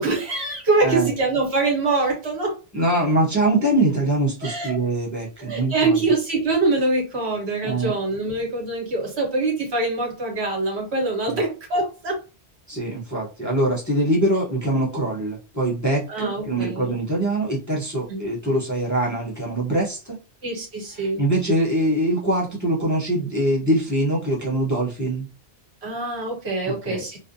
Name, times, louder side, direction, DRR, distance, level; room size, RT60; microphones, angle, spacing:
voice 1, 0.0-2.6 4.4-4.7 5.4-12.2 16.1-16.9 18.1-18.3 20.4-21.2 25.8-27.2, right 3 dB, 80° right, -1 dB, 1.4 m, -24 dB
voice 2, 2.7-6.0 7.6-7.9 11.3-11.4 12.7-20.2 21.0-25.3 26.6-27.0, right 1 dB, 20° left, -4 dB, 0.6 m, -23 dB
2.4 x 2.2 x 2.5 m, 0.32 s
omnidirectional pair, 1.1 m